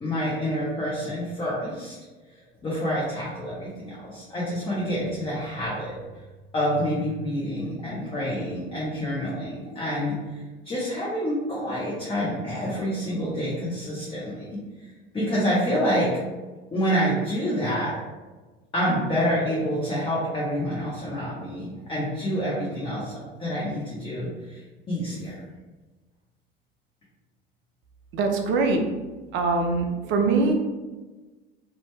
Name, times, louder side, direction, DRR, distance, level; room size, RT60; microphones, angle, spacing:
voice 1, 0.0-2.0 2.6-5.9 6.5-10.1 10.6-14.6 15.1-16.1 16.7-17.9 18.7-24.6 24.9-25.3, equal, 15° left, -6 dB, 0.7 m, -27 dB
voice 2, 28.1-28.8 29.3-30.5, right 3 dB, 40° right, 3 dB, 0.5 m, -23 dB
2.6 x 2.1 x 3.2 m, 1.2 s
figure-of-eight pair, 75°, 31 cm